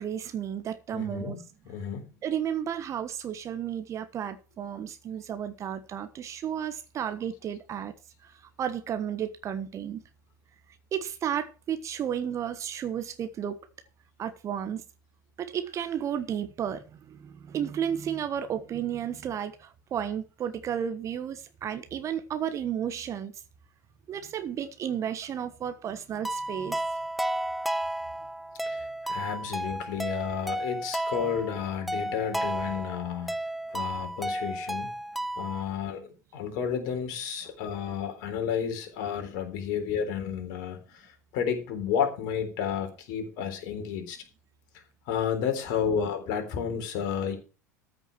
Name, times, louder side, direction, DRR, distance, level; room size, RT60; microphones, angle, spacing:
voice 1, 0.0-1.4 2.2-7.9 8.2-8.3 8.6-10.0 10.9-13.6 14.2-14.8 15.4-23.4 24.1-26.8, right 9 dB, 30° right, 1.3 m, -33 dB
voice 2, 0.9-1.4 1.7-2.1 28.6-33.3 33.7-34.9 35.4-44.2 45.1-47.4, left 7 dB, 50° left, 3.7 m, -31 dB
sound 1, 26.2-35.6, right 1 dB, ahead, 0.8 m, -33 dB
14.0 x 6.2 x 6.1 m
figure-of-eight pair, 80°, 10 cm